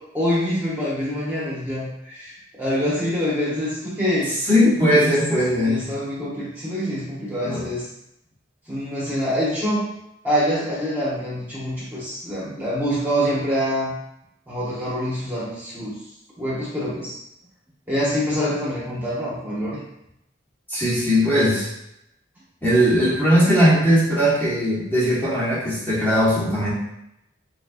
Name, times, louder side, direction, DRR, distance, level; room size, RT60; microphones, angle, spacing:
voice 1, 0.1-4.3 4.9-5.2 5.6-7.8 8.7-9.9 10.2-13.9 14.5-15.9 16.4-17.2 17.9-19.8, equal, 10° right, -9 dB, 1.1 m, -25 dB
voice 2, 4.5-5.8 7.4-7.7 20.7-21.7 22.6-26.7, equal, 10° left, -9 dB, 1.3 m, -19 dB
4.1 x 3.9 x 2.5 m, 0.82 s
head